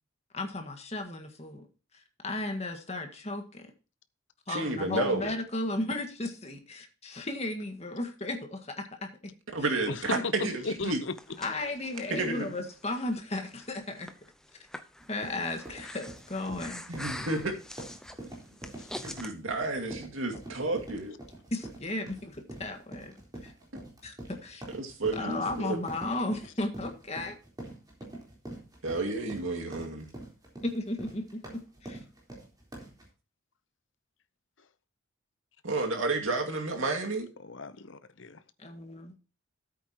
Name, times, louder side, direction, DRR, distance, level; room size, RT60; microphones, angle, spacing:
voice 1, 0.3-1.7 2.2-3.7 4.5-9.3 10.1-10.2 11.4-14.1 15.1-16.8 21.5-23.1 23.4-23.5 24.0-24.6 25.1-27.4 30.6-32.0 38.6-39.2, left 2 dB, 30° left, 1.7 m, -35 dB
voice 2, 4.5-5.3 9.5-11.0 12.1-12.5 16.9-17.5 19.0-21.2 24.7-25.8 28.8-30.1 35.6-37.3, right 2 dB, 70° right, 2.3 m, -31 dB
voice 3, 9.9-11.1 18.8-18.9 37.4-38.4, left 3 dB, 60° left, 0.8 m, -36 dB
Breathing, 10.8-19.3, left 1 dB, 5° left, 0.7 m, -45 dB
sound 1, 15.0-33.1, right 1 dB, 20° right, 3.7 m, -45 dB
13.5 x 8.4 x 3.0 m
head